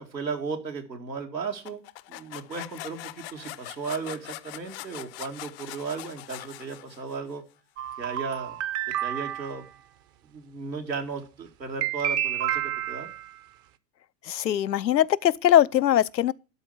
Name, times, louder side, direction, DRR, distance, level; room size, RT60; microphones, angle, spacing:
voice 1, 0.0-1.8 2.1-7.4 8.0-8.6 9.0-9.6 10.3-13.1, right 5 dB, 90° right, 2.2 m, -35 dB
sound 1, 1.6-7.3, left 17 dB, 40° left, 0.6 m, -42 dB
sound 2, 7.8-9.6 11.8-13.3, right 11 dB, 35° right, 0.7 m, -30 dB
voice 2, 14.3-16.3, left 11 dB, 85° left, 0.6 m, -21 dB
12.0 x 4.4 x 7.8 m
figure-of-eight pair, 95°, 49 cm